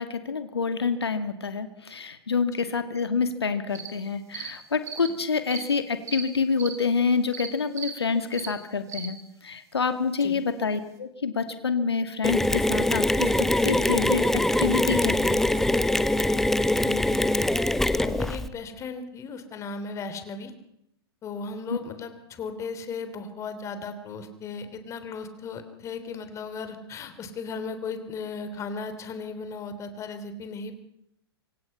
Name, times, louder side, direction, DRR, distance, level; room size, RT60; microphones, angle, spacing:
voice 1, 0.0-15.4 21.7-21.8, left 5 dB, 75° left, 9 dB, 2.3 m, -27 dB
sound 1, 3.7-3.9 4.3-4.5 4.8-5.1 5.5-5.6 6.1-6.2 6.6-6.7 7.3-7.5 7.8-7.9 8.3-8.5 8.9-9.1, right 7 dB, 20° right, 4.3 m, -36 dB
Mechanisms, 12.2-18.5, left 1 dB, 5° left, 1.0 m, -23 dB
voice 2, 16.8-17.2 17.9-20.5 21.2-30.7, left 4 dB, 20° left, 9 dB, 3.3 m, -36 dB
26.0 x 25.0 x 5.7 m, 0.79 s
figure-of-eight pair, 110°, 14 cm